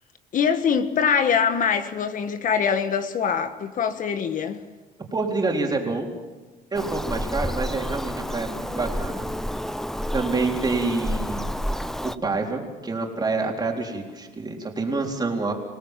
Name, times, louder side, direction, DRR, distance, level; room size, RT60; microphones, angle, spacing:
voice 1, 0.3-4.6, left 7 dB, 50° left, 1.5 m, -23 dB
voice 2, 5.1-6.1 6.7-9.3 10.1-11.5 12.0-15.5, right 3 dB, 25° right, 3.9 m, -27 dB
Bird vocalization bird call bird song, 6.7-12.2, equal, ahead, 0.7 m, -30 dB
27.0 x 18.0 x 7.5 m
cardioid pair, 110°, 17 cm